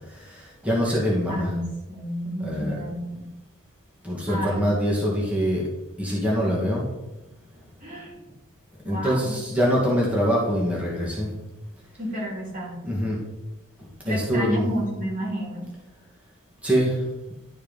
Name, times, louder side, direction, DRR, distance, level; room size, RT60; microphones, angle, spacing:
voice 1, 0.2-1.5 2.4-2.8 4.0-5.6 6.0-6.9 8.9-11.3 12.8-13.2 14.0-14.7 16.6-17.0, equal, 5° right, -5 dB, 2.0 m, -24 dB
voice 2, 1.3-3.3 4.3-5.0 7.8-8.2 8.8-9.4 12.0-13.1 14.0-15.6, equal, 35° right, -5 dB, 3.4 m, -31 dB
11.5 x 4.7 x 5.3 m, 1.0 s
head